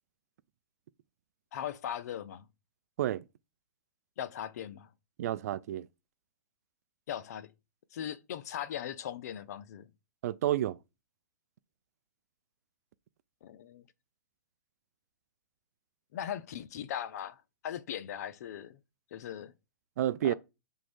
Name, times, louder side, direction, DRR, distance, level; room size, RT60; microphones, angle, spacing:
voice 1, 1.5-2.5 4.2-4.9 7.1-7.5 7.9-9.9 13.4-13.8 16.1-18.8 19.1-19.5 20.2-20.3, left 10 dB, 55° left, 0.7 m, -39 dB
voice 2, 5.2-5.9 10.2-10.8 20.0-20.3, right 12 dB, 55° right, 0.4 m, -30 dB
6.1 x 3.7 x 6.1 m
hypercardioid pair, 150°, 10 cm